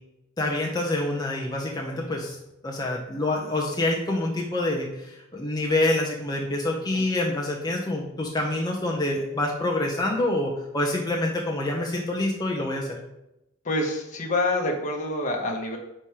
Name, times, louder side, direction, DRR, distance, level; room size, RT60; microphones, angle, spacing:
voice 1, 0.4-2.4 2.6-13.0, left 1 dB, 20° left, -1 dB, 0.7 m, -26 dB
voice 2, 13.6-15.8, left 2 dB, 35° left, 1 dB, 1.2 m, -27 dB
5.3 x 4.3 x 4.8 m, 0.90 s
head